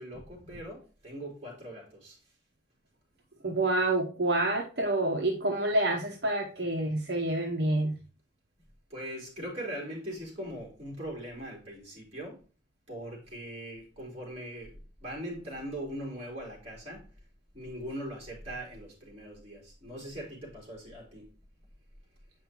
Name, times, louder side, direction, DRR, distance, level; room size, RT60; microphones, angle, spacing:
voice 1, 0.0-2.3 8.9-12.4 12.9-17.0 17.5-21.3, equal, 35° right, 3.5 m, -41 dB
voice 2, 3.4-7.9, right 2 dB, 60° right, 0.9 m, -28 dB
8.2 x 5.4 x 3.0 m
head